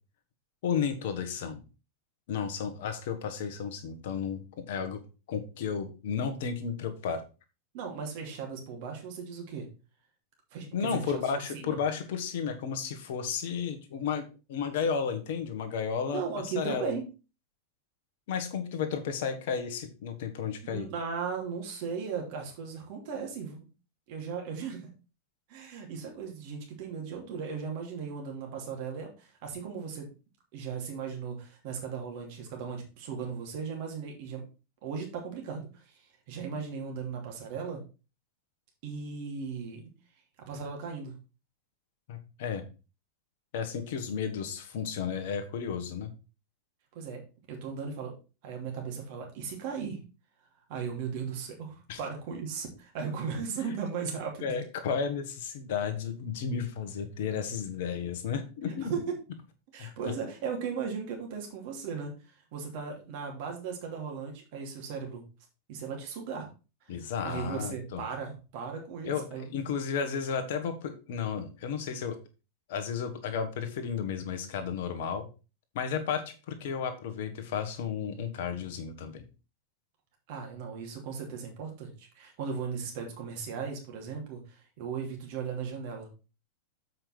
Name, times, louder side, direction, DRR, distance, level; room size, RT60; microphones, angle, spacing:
voice 1, 0.6-1.6 2.3-5.0 5.3-7.2 10.7-16.9 18.3-20.9 42.1-42.6 43.5-46.1 51.9-52.0 54.4-58.9 59.8-59.9 66.9-68.0 69.0-72.2 72.7-75.3 75.7-79.2, left 6 dB, 55° left, 7 dB, 1.4 m, -33 dB
voice 2, 7.7-9.7 10.5-11.2 11.5-11.8 16.1-17.0 20.6-23.6 24.1-24.9 25.5-30.1 30.5-34.4 34.8-37.8 38.8-39.8 40.5-41.1 46.9-47.2 47.5-48.1 48.4-50.0 50.7-54.6 58.7-59.0 59.7-62.1 62.5-65.2 65.7-66.5 67.2-69.5 80.3-86.1, right 6 dB, 50° right, 2 dB, 2.7 m, -37 dB
7.6 x 5.4 x 4.6 m, 0.32 s
figure-of-eight pair, 90°, 0 cm